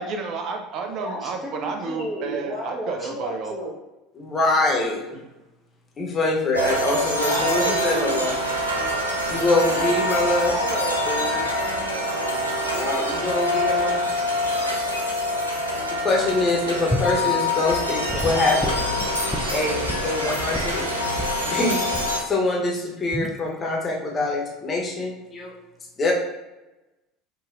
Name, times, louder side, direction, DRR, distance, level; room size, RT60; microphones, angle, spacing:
voice 1, 0.0-3.5, right 4 dB, 45° right, 4 dB, 0.6 m, -31 dB
voice 2, 1.0-3.7 7.3-8.2 9.9-10.0 10.5-12.1, equal, 20° right, -7 dB, 1.0 m, -32 dB
voice 3, 4.2-5.0 6.0-8.3 9.3-10.5 12.7-14.0 16.0-18.9 19.5-20.8 21.4-21.9 22.2-25.5 26.0-26.1, left 2 dB, 30° left, -2 dB, 1.1 m, -24 dB
sound 1, 6.5-22.2, left 1 dB, 90° right, 0.5 m, -25 dB
Gurgling / Sink (filling or washing) / Liquid, 16.9-17.2 18.1-20.8 21.2-21.4 21.9-22.2 23.1-23.4, equal, 5° left, 0.4 m, -29 dB
5.5 x 2.5 x 2.6 m, 1.0 s
figure-of-eight pair, 70°, 0 cm